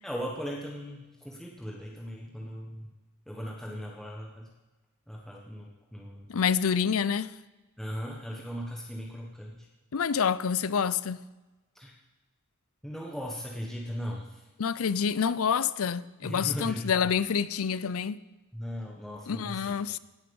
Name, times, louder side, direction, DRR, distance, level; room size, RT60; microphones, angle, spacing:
voice 1, 0.0-2.9 3.3-4.5 5.1-6.3 7.8-9.7 11.7-11.9 12.8-14.4 16.2-16.9 18.5-19.8, equal, ahead, 1.3 m, -38 dB
voice 2, 6.3-7.3 9.9-11.2 14.6-18.2 19.3-20.0, left 7 dB, 85° left, 0.5 m, -27 dB
17.5 x 7.8 x 7.0 m
head